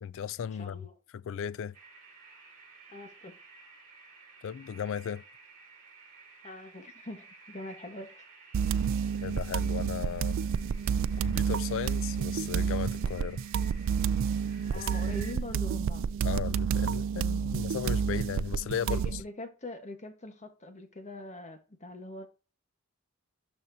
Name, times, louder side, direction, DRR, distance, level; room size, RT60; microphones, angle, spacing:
voice 1, 0.0-0.9 1.1-1.8 4.4-5.2 9.2-10.4 11.2-13.4 14.7-14.9 16.2-19.2, left 8 dB, 60° left, 0.3 m, -36 dB
voice 2, 0.6-0.9 2.9-3.4 6.4-8.3 14.7-16.1 18.8-22.3, left 1 dB, 35° left, 1.2 m, -43 dB
sound 1, 1.7-15.3, right 3 dB, 40° right, 3.5 m, -54 dB
sound 2, 8.5-19.2, right 7 dB, 65° right, 0.3 m, -30 dB
12.5 x 4.3 x 2.7 m
head